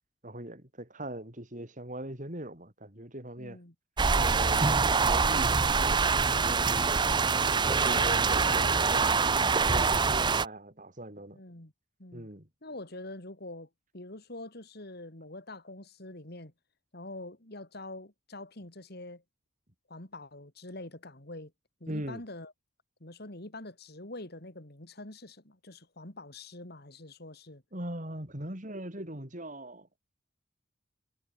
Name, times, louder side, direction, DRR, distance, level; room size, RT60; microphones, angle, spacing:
voice 1, 0.2-3.6 4.2-4.7 5.0-7.0 7.2-9.1 9.7-11.4 12.1-12.5 21.9-22.2 27.7-29.9, right 1 dB, 40° right, 5.1 m, -40 dB
voice 2, 3.4-3.7 7.7-8.6 9.4-9.7 11.3-11.7 12.0-12.3 12.6-16.5 16.9-19.2 19.9-21.5 21.8-22.5 23.0-27.6, left 2 dB, 50° left, 3.0 m, -45 dB
sound 1, 4.0-10.5, right 4 dB, 20° right, 0.6 m, -25 dB
head